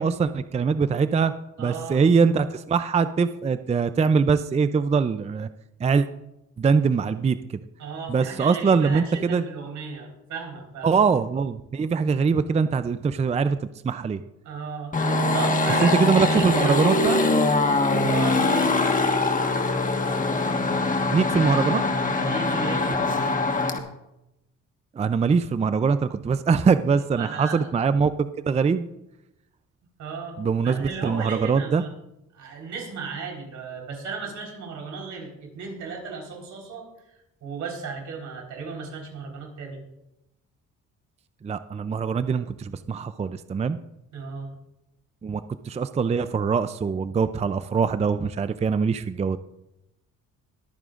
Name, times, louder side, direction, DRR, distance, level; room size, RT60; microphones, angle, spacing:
voice 1, 0.0-1.3 1.6-5.5 5.8-6.1 6.6-7.4 8.1-9.4 10.8-14.2 15.8-17.2 21.1-21.8 25.0-28.1 28.4-28.8 30.4-31.8 41.4-43.8 45.2-49.4, right 5 dB, 20° right, 12 dB, 0.4 m, -22 dB
voice 2, 1.6-2.0 7.8-10.9 14.4-14.9 15.3-17.0 18.0-18.8 22.1-23.0 27.2-27.7 30.0-31.9 32.3-36.9 37.4-39.8 44.1-44.5, right 5 dB, 75° right, 0 dB, 4.1 m, -35 dB
sound 1, 14.9-23.8, left 2 dB, 25° left, 1.4 m, -23 dB
22.5 x 9.0 x 2.5 m, 0.89 s
cardioid pair, 90°, 30 cm